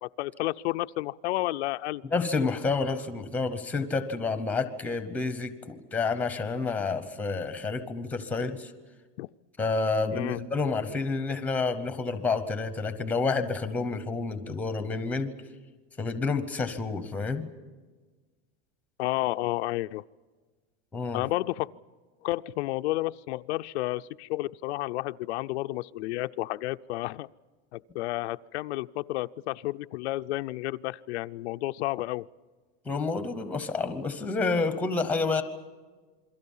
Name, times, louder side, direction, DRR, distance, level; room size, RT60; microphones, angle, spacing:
voice 1, 0.0-2.0 9.2-9.3 10.1-10.4 19.0-20.0 21.1-21.7 22.2-27.3 27.7-32.3, left 18 dB, 85° left, 11 dB, 0.6 m, -31 dB
voice 2, 2.0-8.7 9.6-15.3 16.0-17.5 20.9-21.2 32.8-35.4, left 4 dB, 5° left, 10 dB, 0.8 m, -29 dB
28.0 x 22.5 x 5.5 m, 1.4 s
supercardioid pair, 180°, 32 cm